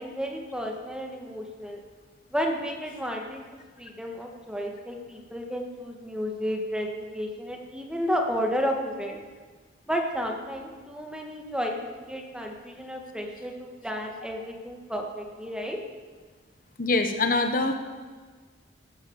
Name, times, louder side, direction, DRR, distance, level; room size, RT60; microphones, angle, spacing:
voice 1, 0.0-1.8 2.3-3.4 3.8-9.3 9.9-15.8, equal, 5° right, 2 dB, 1.7 m, -32 dB
voice 2, 16.8-17.7, left 3 dB, 50° left, 6 dB, 1.2 m, -24 dB
14.5 x 12.0 x 7.2 m, 1.4 s
head